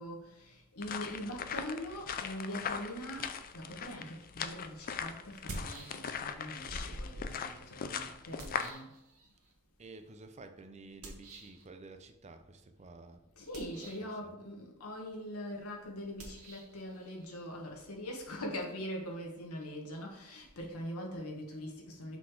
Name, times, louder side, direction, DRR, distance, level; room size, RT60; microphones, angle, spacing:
voice 1, 0.0-9.0 13.4-22.2, equal, 70° left, 0 dB, 1.5 m, -42 dB
sound 1, 0.8-8.7, left 7 dB, 40° left, 0.4 m, -40 dB
sound 2, 4.3-4.4 5.3-6.3 6.7-9.5 11.0-11.6 13.4-14.2 16.1-18.7, right 1 dB, 65° right, 1.5 m, -47 dB
voice 2, 9.8-13.2 13.7-14.4, right 3 dB, 30° right, 7 dB, 0.6 m, -52 dB
6.0 x 4.0 x 4.7 m, 0.88 s
head